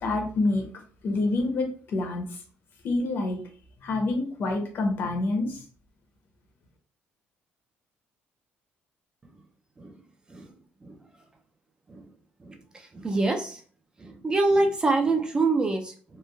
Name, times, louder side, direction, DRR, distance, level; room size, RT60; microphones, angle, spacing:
voice 1, 0.0-0.7 1.0-2.3 2.8-3.4 3.8-5.6, left 2 dB, 55° left, 3 dB, 0.7 m, -27 dB
voice 2, 12.4-13.6 14.0-16.2, right 3 dB, 20° right, 4 dB, 0.4 m, -26 dB
3.0 x 2.1 x 2.3 m, 0.43 s
cardioid pair, 120°, 4 cm